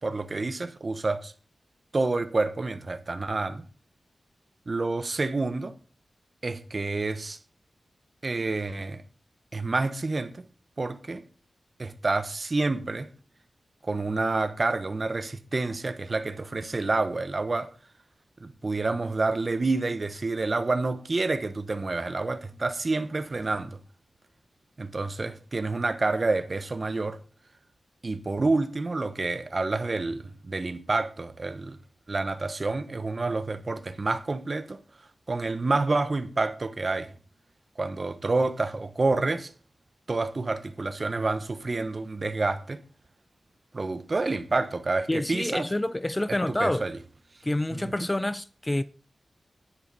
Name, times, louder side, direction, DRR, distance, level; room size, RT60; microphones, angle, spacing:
voice 1, 0.0-1.3 1.9-3.6 4.7-5.7 6.4-7.4 8.2-9.0 9.5-10.4 10.8-11.2 11.8-13.1 13.8-17.7 18.4-23.8 24.8-27.2 28.0-31.8 32.1-34.8 35.3-37.1 37.8-39.5 40.1-42.8 43.7-45.7 46.3-47.0 47.7-47.9, right 3 dB, 45° right, 1.2 m, -28 dB
voice 2, 45.1-46.8 47.4-48.8, left 1 dB, 20° left, 0.5 m, -27 dB
10.5 x 9.8 x 4.2 m
cardioid pair, 65°, 0 cm